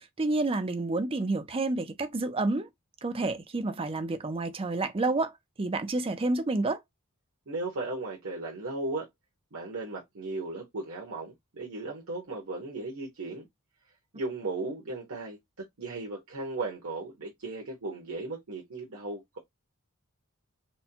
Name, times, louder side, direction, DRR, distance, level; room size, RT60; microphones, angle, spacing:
voice 1, 0.0-2.7 3.0-6.8, right 2 dB, 25° right, 0.5 m, -29 dB
voice 2, 7.5-9.1 9.5-13.5 14.1-15.4 15.8-19.4, right 2 dB, 80° right, 1.1 m, -36 dB
4.3 x 2.3 x 2.8 m
head